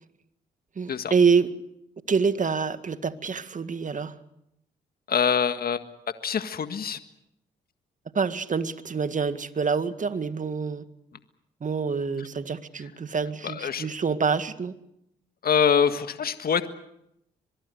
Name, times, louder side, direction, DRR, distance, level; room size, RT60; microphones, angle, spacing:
voice 1, 0.8-1.5 2.1-4.1 8.1-10.8 11.6-14.7, right 5 dB, 40° right, 11 dB, 1.9 m, -26 dB
voice 2, 5.1-5.8 6.2-7.0 13.4-13.9 15.4-16.7, left 7 dB, 55° left, 10 dB, 1.7 m, -24 dB
24.0 x 22.0 x 8.1 m, 0.80 s
supercardioid pair, 50°, 19 cm